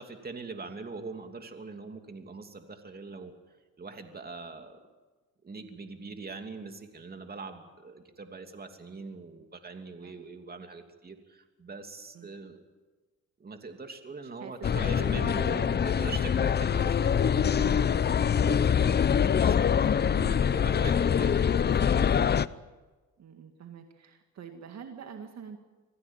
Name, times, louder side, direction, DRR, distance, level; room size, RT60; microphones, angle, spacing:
voice 1, 0.0-3.3 3.8-4.8 5.4-12.6 13.4-22.3, right 4 dB, 30° right, 6 dB, 2.9 m, -43 dB
voice 2, 14.2-15.6 23.2-25.6, right 7 dB, 60° right, 5 dB, 2.0 m, -44 dB
sound 1, 14.6-22.5, left 7 dB, 35° left, 0.6 m, -24 dB
25.0 x 16.0 x 9.1 m, 1.3 s
cardioid pair, 90°, 30 cm